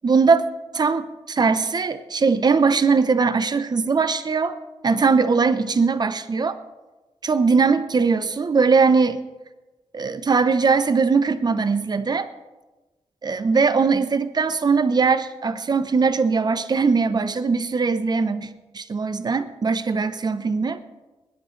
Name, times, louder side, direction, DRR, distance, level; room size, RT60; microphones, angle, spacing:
voice 1, 0.0-0.4 0.7-4.6 4.8-6.6 7.2-9.2 9.9-12.3 13.2-18.5 18.7-20.8, right 4 dB, 40° right, 11 dB, 0.9 m, -20 dB
21.5 x 11.0 x 3.3 m, 1.1 s
cardioid pair, 80°, 11 cm